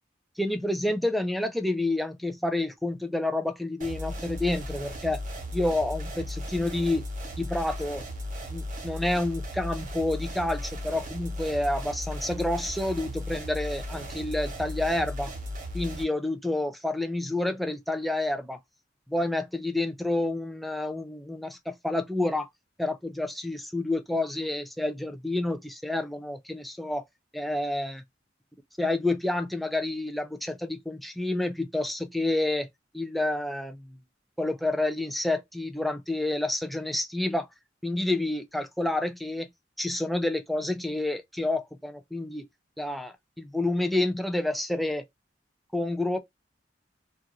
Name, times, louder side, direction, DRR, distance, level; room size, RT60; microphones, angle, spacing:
voice 1, 0.4-5.2 5.5-7.1 7.4-8.1 8.5-15.3 15.7-18.6 19.1-22.5 22.8-27.0 27.3-28.0 28.8-32.7 32.9-34.0 34.4-37.5 37.8-39.5 39.8-42.5 42.8-45.0 45.7-46.2, left 2 dB, ahead, 0.4 m, -29 dB
sound 1, 3.8-16.0, equal, 45° right, 0.8 m, -36 dB
2.5 x 2.4 x 2.9 m
head